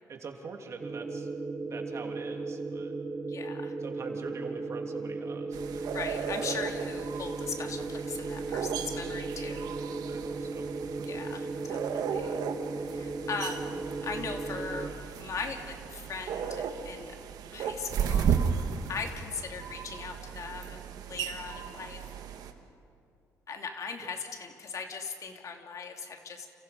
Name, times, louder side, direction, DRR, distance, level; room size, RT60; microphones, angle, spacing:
voice 1, 0.1-1.3 1.6-2.9 3.8-5.9 10.0-11.0 24.0-24.1, right 4 dB, 45° right, 3 dB, 3.2 m, -44 dB
sound 1, 0.8-14.9, right 3 dB, 30° right, 2.0 m, -36 dB
voice 2, 3.3-3.7 5.9-9.7 11.0-12.4 12.9-14.9 15.2-17.2 17.5-18.4 18.9-20.8 21.1-22.0 23.5-26.5, left 5 dB, 55° left, 4 dB, 2.7 m, -39 dB
sound 2, 5.5-22.5, right 7 dB, 80° right, 1.8 m, -35 dB
29.5 x 28.5 x 5.4 m, 2.6 s
cardioid pair, 100°, 7 cm